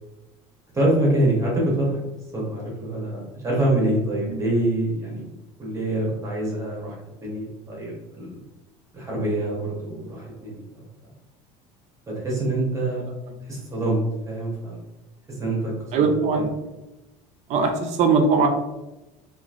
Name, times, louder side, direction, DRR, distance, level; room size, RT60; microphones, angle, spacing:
voice 1, 0.7-2.0 2.3-5.3 5.6-7.0 7.2-8.4 8.9-10.8 12.1-13.0 13.5-14.8 15.3-16.0 16.3-16.4, right 1 dB, 20° right, -4 dB, 1.0 m, -25 dB
voice 2, 15.9-16.6 17.5-18.5, right 4 dB, 50° right, 4 dB, 0.5 m, -20 dB
2.9 x 2.4 x 2.4 m, 1.0 s
supercardioid pair, 120°, 15 cm